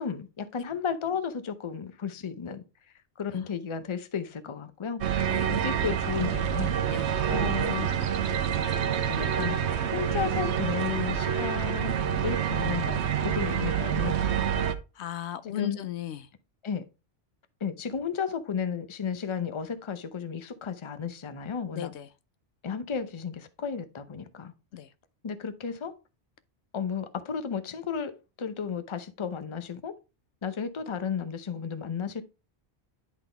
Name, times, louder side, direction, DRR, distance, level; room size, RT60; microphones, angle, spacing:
voice 1, 0.0-2.6 3.2-5.0 5.5-6.7 7.3-7.9 9.0-9.6 9.9-11.9 12.2-14.7 15.5-15.8 16.6-16.8 17.6-21.9 22.6-24.5 25.2-25.9 26.7-29.9 30.4-32.2, left 6 dB, 35° left, 0.6 m, -33 dB
sound 1, 5.0-14.7, right 8 dB, 85° right, 1.0 m, -27 dB
voice 2, 15.0-16.3 21.7-22.1 24.7-24.9, left 10 dB, 80° left, 0.9 m, -36 dB
10.5 x 3.9 x 3.3 m
omnidirectional pair, 1.1 m